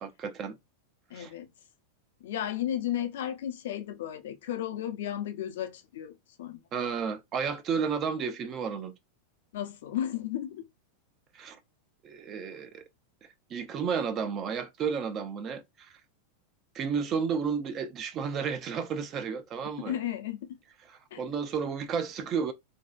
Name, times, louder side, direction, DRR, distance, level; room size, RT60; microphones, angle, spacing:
voice 1, 0.0-0.6 1.1-1.3 6.7-8.9 11.3-11.6 12.0-12.8 13.5-15.9 16.7-20.0 20.9-22.5, right 6 dB, 35° right, 0.4 m, -32 dB
voice 2, 1.1-1.5 2.2-6.6 9.5-10.6 19.8-20.6 21.1-21.2, left 11 dB, 75° left, 0.5 m, -34 dB
2.6 x 2.1 x 2.4 m
hypercardioid pair, 125°, 0 cm